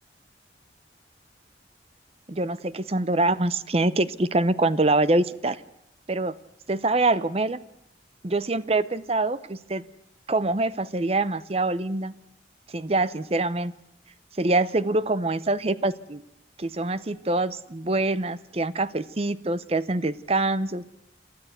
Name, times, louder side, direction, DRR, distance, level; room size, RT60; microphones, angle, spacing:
voice 1, 2.3-5.6 6.1-6.3 6.7-7.6 8.2-9.8 10.3-12.1 12.7-13.7 14.4-16.2 16.6-20.8, right 2 dB, 35° right, 15 dB, 0.7 m, -25 dB
27.5 x 13.0 x 8.1 m, 0.84 s
head